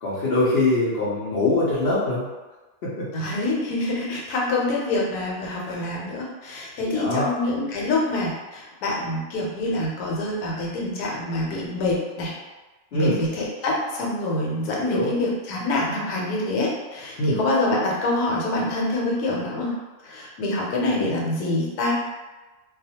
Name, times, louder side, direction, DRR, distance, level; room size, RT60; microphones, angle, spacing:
voice 1, 0.0-2.3 2.8-3.1 5.6-5.8 6.9-7.3 12.9-13.2 14.8-15.1 17.2-17.4, left 2 dB, 60° left, -8 dB, 0.7 m, -23 dB
voice 2, 3.1-12.3 12.9-19.7 20.0-21.9, left 2 dB, 85° left, -3 dB, 1.2 m, -26 dB
2.3 x 2.3 x 2.7 m, 1.2 s
omnidirectional pair, 1.6 m